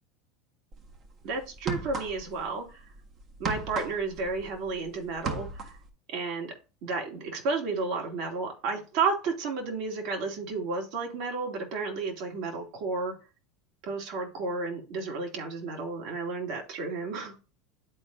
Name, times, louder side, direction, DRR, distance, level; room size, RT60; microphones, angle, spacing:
sound 1, 0.7-0.9 1.5-2.4 2.7-4.8 5.1-5.9, right 4 dB, 40° right, 1.5 m, -34 dB
voice 1, 1.2-2.8 3.4-5.8 6.1-6.5 6.8-13.2 13.8-17.3, right 4 dB, 60° right, 2.7 m, -32 dB
11.5 x 4.4 x 2.7 m
hypercardioid pair, 95°, 0 cm